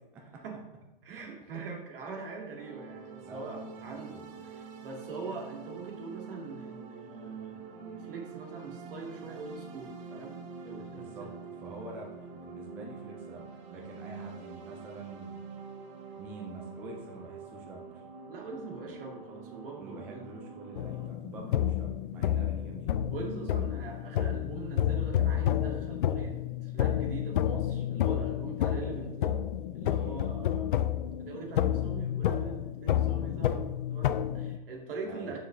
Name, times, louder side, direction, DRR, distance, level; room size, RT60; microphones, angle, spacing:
voice 1, 1.0-4.2 4.4-10.4 10.6-11.3 18.3-20.3 23.1-29.4 29.7-30.9 31.2-35.4, right 4 dB, 70° right, 0 dB, 2.3 m, -43 dB
sound 1, 2.6-21.1, right 5 dB, 35° right, 0.8 m, -46 dB
voice 2, 3.2-4.2 10.9-11.3 11.6-15.4 16.1-18.0 18.9-19.0 19.8-22.9 28.4-28.6 29.9-30.3 35.1-35.4, right 2 dB, 5° right, 0 dB, 0.3 m, -46 dB
sound 2, 20.7-34.6, left 11 dB, 60° left, 0.5 m, -30 dB
7.1 x 6.5 x 3.2 m, 1.0 s
hypercardioid pair, 150°, 29 cm